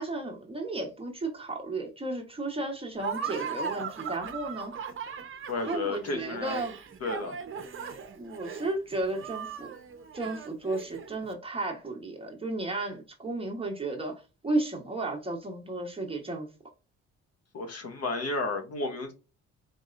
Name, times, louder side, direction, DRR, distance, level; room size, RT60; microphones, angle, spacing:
voice 1, 0.0-4.7 5.6-6.8 8.2-9.7 10.1-16.5, right 2 dB, 20° right, 1.4 m, -33 dB
Laughter, 3.0-11.3, right 6 dB, 45° right, 0.9 m, -38 dB
voice 2, 5.5-6.6 7.0-7.3 17.5-19.1, left 3 dB, 55° left, 1.3 m, -32 dB
4.3 x 3.4 x 2.6 m
cardioid pair, 90°, 30 cm